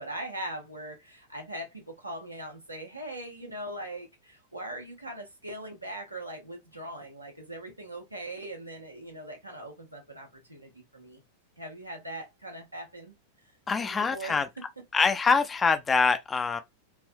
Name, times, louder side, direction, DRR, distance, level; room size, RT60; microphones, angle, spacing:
voice 1, 0.0-11.2 11.6-13.1 13.8-14.4, right 1 dB, 85° right, 1.0 m, -40 dB
voice 2, 13.7-14.5 14.9-16.6, left 5 dB, 15° left, 0.5 m, -24 dB
3.3 x 2.5 x 2.2 m
figure-of-eight pair, 90°, 0 cm